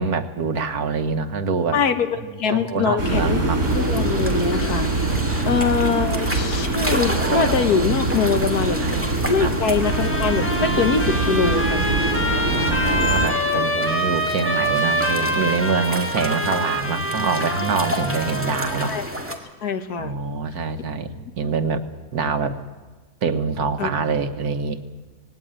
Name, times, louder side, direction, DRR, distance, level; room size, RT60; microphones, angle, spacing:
voice 1, 0.0-1.8 2.2-3.6 5.3-5.6 8.8-8.9 9.4-9.5 12.1-18.9 20.0-21.8 22.1-22.5 23.2-24.8, right 5 dB, 80° right, 8 dB, 1.7 m, -25 dB
voice 2, 1.7-2.1 2.4-3.4 3.7-5.2 5.5-8.8 9.3-11.9 18.8-20.1 23.8-23.9, left 6 dB, 85° left, 8 dB, 1.8 m, -23 dB
sound 1, 3.0-13.3, right 2 dB, 50° right, 4.1 m, -23 dB
sound 2, 3.6-19.4, equal, 10° right, 1.9 m, -31 dB
Trumpet, 9.8-19.0, equal, 10° left, 3.4 m, -25 dB
18.5 x 17.5 x 8.9 m, 1.3 s
omnidirectional pair, 1.6 m